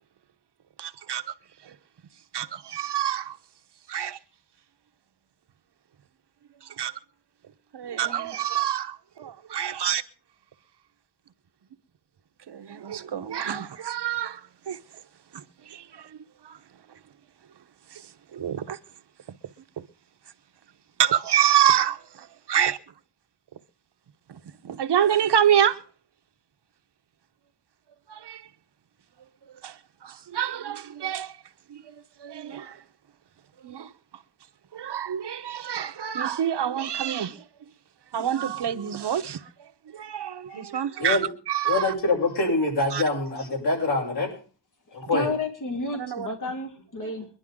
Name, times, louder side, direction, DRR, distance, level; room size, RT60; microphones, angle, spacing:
voice 1, 0.8-1.2 1.6-1.7 2.3-3.4 3.9-4.2 6.8-6.9 7.7-10.0 12.5-14.4 14.7-14.8 15.3-16.2 16.4-16.6 17.9-18.0 18.3-18.8 19.8-19.9 21.0-22.8 24.3-25.8 28.1-28.4 29.6-29.8 30.0-31.3 31.7-32.8 33.6-33.9 34.7-37.4 38.1-41.2 41.5-41.9 42.9-43.0 46.0-46.5 47.0-47.1, right 10 dB, 80° right, 1.0 m, -27 dB
voice 2, 41.7-44.3 44.9-45.3, left 2 dB, 75° left, 6.9 m, -25 dB
voice 3, 45.1-47.3, left 2 dB, 50° left, 3.1 m, -31 dB
23.0 x 11.5 x 3.7 m
wide cardioid pair, 120°, 40 cm